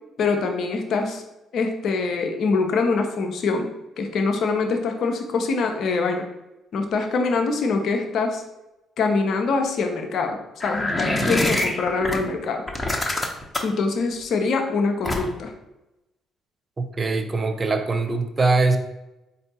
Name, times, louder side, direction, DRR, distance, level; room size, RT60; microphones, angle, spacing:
voice 1, 0.2-1.2 1.5-3.7 4.0-6.3 6.7-8.4 9.0-12.6 13.6-15.5, left 4 dB, 55° left, 4 dB, 0.7 m, -24 dB
sound 1, 10.6-12.2 12.7-13.8 15.0-15.5, left 1 dB, 15° left, 0.9 m, -24 dB
voice 2, 16.8-18.8, right 3 dB, 30° right, 7 dB, 0.6 m, -22 dB
4.3 x 2.7 x 4.0 m, 0.97 s
figure-of-eight pair, 45°, 0 cm